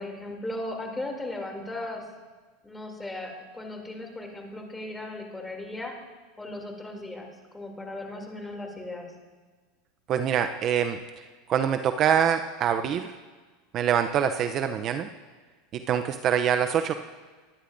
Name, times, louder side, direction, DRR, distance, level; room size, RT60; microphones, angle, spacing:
voice 1, 0.0-2.0 2.6-5.9 6.4-9.1, left 2 dB, 10° left, 1 dB, 2.8 m, -37 dB
voice 2, 10.1-11.0 11.5-13.2 13.7-15.1 15.7-16.9, right 8 dB, 45° right, 8 dB, 0.6 m, -25 dB
22.5 x 10.0 x 2.6 m, 1.4 s
hypercardioid pair, 105°, 0 cm